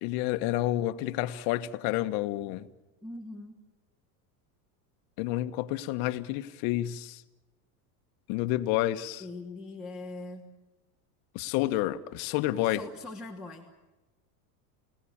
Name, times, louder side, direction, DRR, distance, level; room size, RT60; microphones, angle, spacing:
voice 1, 0.0-2.7 5.2-7.2 8.3-9.2 11.3-12.9, left 15 dB, 55° left, 1.5 m, -29 dB
voice 2, 3.0-3.5 9.2-10.4 12.7-13.7, left 2 dB, ahead, 2.8 m, -41 dB
30.0 x 18.0 x 8.8 m
supercardioid pair, 130°, 45 cm